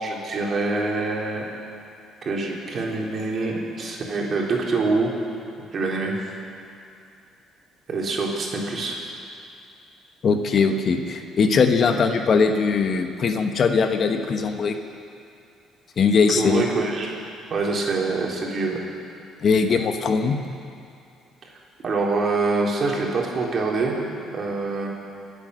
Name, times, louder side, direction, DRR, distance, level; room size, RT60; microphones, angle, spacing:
voice 1, 0.0-1.4 2.2-5.1 5.7-6.1 7.9-9.0 16.3-17.1 17.5-18.8 21.8-24.0 24.3-25.0, right 3 dB, 45° right, -2 dB, 3.3 m, -25 dB
voice 2, 10.2-14.8 16.0-16.7 19.4-20.4, left 5 dB, 50° left, 6 dB, 1.1 m, -20 dB
24.5 x 8.2 x 6.4 m, 2.5 s
cardioid pair, 90°, 0 cm